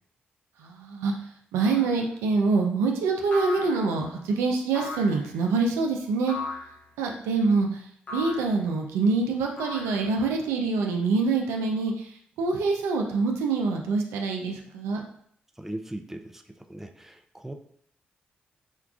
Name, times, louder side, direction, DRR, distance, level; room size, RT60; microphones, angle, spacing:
voice 1, 0.6-1.1 1.5-6.3 7.0-7.8 8.1-12.1 12.4-15.0, right 4 dB, 85° right, 2 dB, 0.4 m, -25 dB
sound 1, 1.6-2.0 3.3-4.1 4.8-5.3 6.3-6.8 8.1-8.6 9.6-10.3, left 3 dB, 40° left, 0.9 m, -37 dB
voice 2, 15.6-17.5, right 1 dB, 5° right, 5 dB, 0.4 m, -39 dB
4.5 x 2.3 x 2.3 m, 0.65 s
hypercardioid pair, 40°, 4 cm